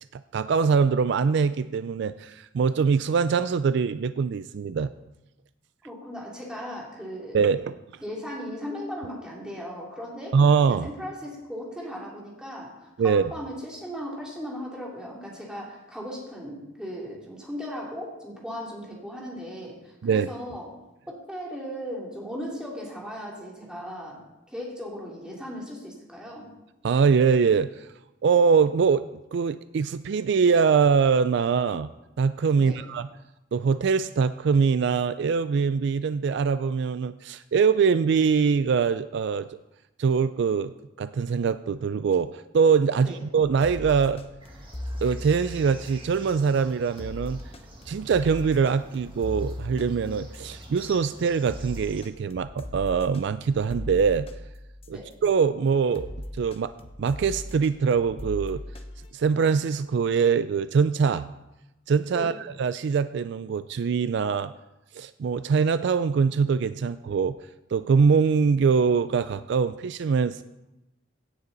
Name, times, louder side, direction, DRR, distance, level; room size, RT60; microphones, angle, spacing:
voice 1, 0.1-4.9 7.3-7.7 10.3-10.9 13.0-13.3 20.0-20.3 26.8-27.9 28.2-29.0 29.3-31.9 32.2-33.1 33.5-39.5 40.0-44.2 45.0-47.4 47.9-54.3 54.9-56.1 56.4-56.7 57.0-58.6 59.1-61.3 61.9-62.3 62.6-64.5 64.9-67.4 67.7-70.4, right 5 dB, 60° right, 13 dB, 0.3 m, -23 dB
voice 2, 5.8-7.4 8.0-20.8 21.1-24.2 24.5-26.5 32.5-32.8 42.9-43.2 54.9-55.1 62.1-62.3, equal, 5° right, -4 dB, 2.6 m, -37 dB
sound 1, 43.6-55.4 55.9-59.1, left 1 dB, 30° left, 0.9 m, -39 dB
sound 2, 44.4-52.0, right 2 dB, 25° right, 1.7 m, -48 dB
16.5 x 8.1 x 4.0 m, 0.97 s
head